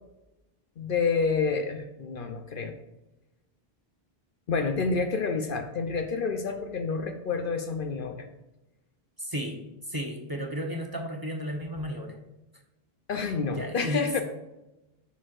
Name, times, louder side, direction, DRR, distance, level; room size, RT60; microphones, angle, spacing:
voice 1, 0.8-2.7 4.5-8.3 13.1-14.2, left 4 dB, 60° left, 5 dB, 0.8 m, -28 dB
voice 2, 9.2-9.6 9.9-12.2 13.5-14.2, equal, 25° right, 1 dB, 0.8 m, -33 dB
11.0 x 4.5 x 2.5 m, 0.98 s
omnidirectional pair, 1.0 m